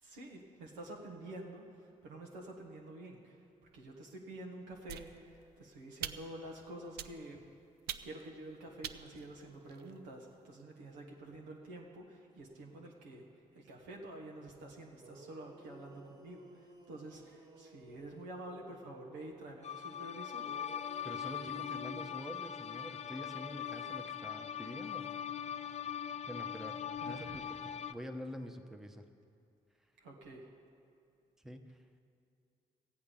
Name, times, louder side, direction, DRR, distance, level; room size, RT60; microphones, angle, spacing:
voice 1, 0.0-3.4 3.7-7.4 8.0-13.2 13.5-20.5 26.9-27.6 30.0-30.5, right 1 dB, 85° right, -1 dB, 1.3 m, -49 dB
sound 1, 4.9-5.5 6.0-6.5 7.0-7.4 7.9-8.3 8.8-10.0, right 10 dB, 65° right, 0.4 m, -45 dB
sound 2, 15.0-19.2 20.4-24.5, right 1 dB, 20° right, 1.7 m, -57 dB
sound 3, 19.6-27.9, left 9 dB, 40° left, 0.5 m, -41 dB
voice 2, 21.0-25.2 26.3-26.8 27.0-29.0 31.4-31.8, equal, ahead, 5 dB, 1.0 m, -46 dB
14.5 x 8.5 x 5.4 m, 2.4 s
hypercardioid pair, 40°, 18 cm